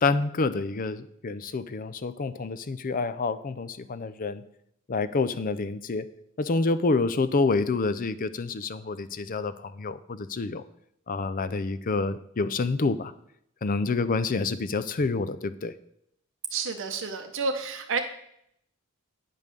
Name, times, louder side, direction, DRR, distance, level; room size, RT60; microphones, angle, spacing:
voice 1, 0.0-4.4 4.9-6.1 6.4-10.6 11.1-13.1 13.6-15.7, left 3 dB, 40° left, 14 dB, 0.5 m, -28 dB
voice 2, 16.5-18.0, right 4 dB, 55° right, 5 dB, 0.7 m, -30 dB
9.2 x 5.4 x 6.7 m, 0.74 s
head